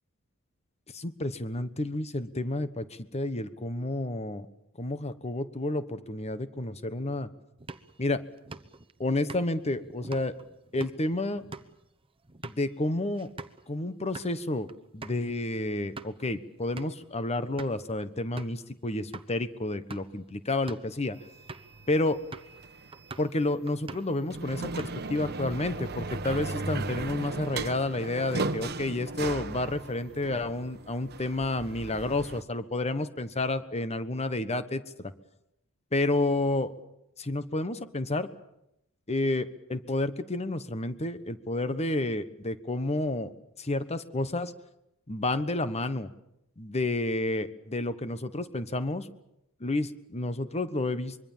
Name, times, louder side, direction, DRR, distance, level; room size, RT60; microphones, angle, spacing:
voice 1, 0.9-4.5 4.8-7.3 8.0-8.2 9.0-10.3 10.7-11.5 12.4-13.3 13.7-14.7 14.9-21.2 21.9-22.2 23.2-35.1 35.9-36.7 37.2-38.3 39.1-43.3 43.6-44.5 45.1-46.1 46.6-49.1 49.6-51.2, left 2 dB, 30° left, 12 dB, 1.2 m, -30 dB
sound 1, 7.6-13.6 14.0-14.3 14.7-14.8 15.0-15.2 15.7-16.2 16.8-17.1 17.6-17.9 18.4-18.6 19.1-19.3 19.8-20.2 20.5-20.9 21.5-21.8 22.3-22.6 22.9-23.4 23.7-24.2 24.5-25.2, right 3 dB, 25° right, 1.0 m, -45 dB
sound 2, 21.2-23.2 24.2-32.4, right 3 dB, 50° right, 1.2 m, -36 dB
25.0 x 23.0 x 7.3 m, 0.83 s
head